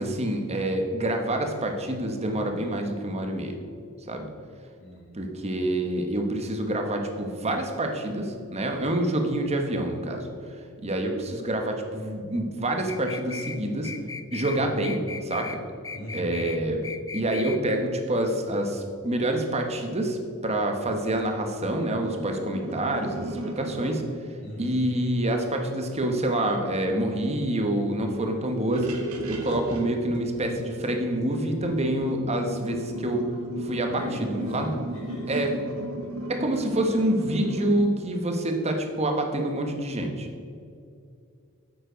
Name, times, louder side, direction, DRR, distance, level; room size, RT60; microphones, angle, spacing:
voice 1, 0.0-3.6 4.1-4.3 5.1-10.3 10.8-13.9 14.3-15.6 16.1-16.9 17.1-24.0 24.6-28.9 29.2-33.3 33.6-34.8 35.3-35.6 36.3-40.3, right 1 dB, 30° right, 4 dB, 1.2 m, -27 dB
voice 2, 4.8-5.2 15.9-16.4 24.4-24.8 33.9-35.4, equal, 75° left, -8 dB, 2.6 m, -39 dB
sound 1, 12.9-13.6 13.8-14.6 14.8-15.6 15.8-16.6 16.8-17.6, left 5 dB, 15° left, 0.3 m, -37 dB
sound 2, 22.0-24.1 26.7-26.8 27.1-27.3 27.7-27.8 28.5-37.7, right 1 dB, 85° right, 1.4 m, -36 dB
9.2 x 7.8 x 5.1 m, 2.4 s
head